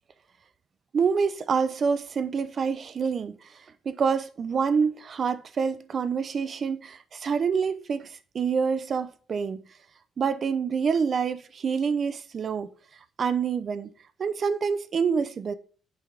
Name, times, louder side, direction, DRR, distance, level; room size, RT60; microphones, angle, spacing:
voice 1, 0.9-3.4 3.8-9.6 10.2-12.7 13.2-13.9 14.2-15.5, right 6 dB, 50° right, 0.8 m, -27 dB
9.8 x 5.5 x 3.6 m
cardioid pair, 90°, 0 cm